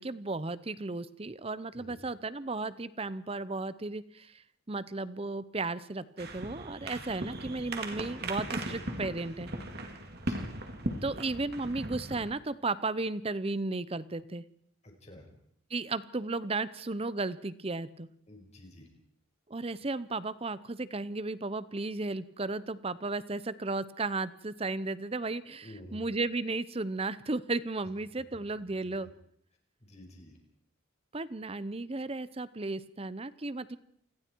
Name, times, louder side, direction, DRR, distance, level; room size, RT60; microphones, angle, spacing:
voice 1, 0.0-4.4 4.7-9.5 11.0-14.5 15.7-18.1 19.5-29.1 31.1-33.8, right 3 dB, 30° right, 16 dB, 0.7 m, -34 dB
sound 1, 6.2-12.3, right 1 dB, 50° right, 2.6 m, -38 dB
voice 2, 14.8-15.3 18.3-18.9 25.6-26.0 28.1-28.2 28.6-29.0 29.8-30.4, left 1 dB, 35° left, 2 dB, 5.4 m, -50 dB
28.0 x 20.5 x 4.6 m, 0.68 s
head